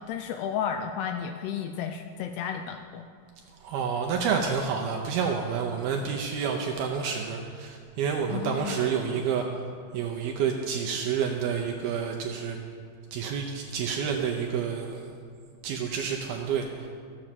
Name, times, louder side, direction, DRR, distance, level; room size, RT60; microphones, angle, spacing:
voice 1, 0.0-3.1 8.3-8.8, left 8 dB, 85° left, 6 dB, 2.4 m, -33 dB
voice 2, 3.6-9.4 9.9-12.6 13.1-15.1 15.6-16.9, right 6 dB, 80° right, 2 dB, 2.3 m, -29 dB
13.5 x 7.7 x 7.3 m, 2.2 s
omnidirectional pair, 5.2 m